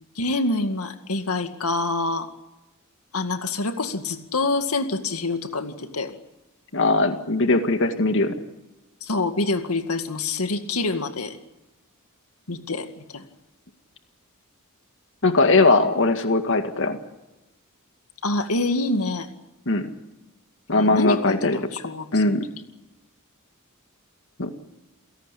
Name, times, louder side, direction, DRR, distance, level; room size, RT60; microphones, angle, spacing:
voice 1, 0.2-2.3 3.1-6.1 9.0-11.4 12.5-13.2 18.2-19.3 20.7-22.4, left 2 dB, 90° left, 7 dB, 2.1 m, -26 dB
voice 2, 6.7-8.3 15.2-17.0 19.7-19.9 20.7-21.6 22.1-22.4 24.4-24.5, left 2 dB, 60° left, 7 dB, 2.0 m, -20 dB
29.0 x 17.5 x 8.5 m, 1.0 s
head